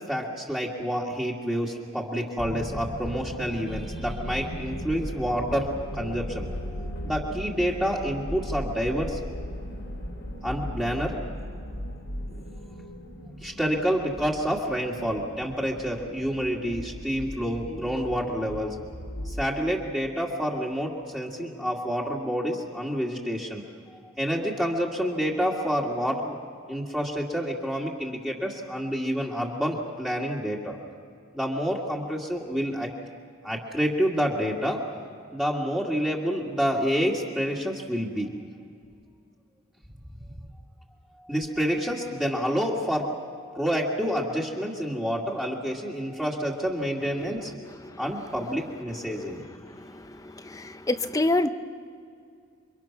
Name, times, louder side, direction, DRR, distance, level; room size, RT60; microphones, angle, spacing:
voice 1, 0.1-9.2 10.4-11.2 13.4-18.8 19.3-23.6 24.2-26.3 26.7-30.8 31.3-32.9 33.4-38.3 41.2-47.5 48.0-49.4, equal, 5° right, -4 dB, 2.1 m, -28 dB
sound 1, 2.4-19.5, equal, 65° left, 3.1 m, -37 dB
voice 2, 50.5-51.5, left 2 dB, 15° left, 10 dB, 0.8 m, -25 dB
29.0 x 24.5 x 6.0 m, 2.2 s
head